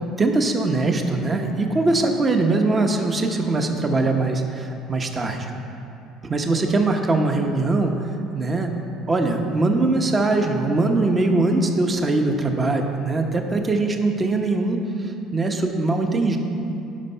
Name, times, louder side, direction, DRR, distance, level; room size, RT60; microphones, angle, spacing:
voice 1, 0.2-5.5 6.2-8.7 9.1-16.4, right 2 dB, 25° right, 4 dB, 0.9 m, -22 dB
11.5 x 5.3 x 5.6 m, 2.9 s
cardioid pair, 120°, 0 cm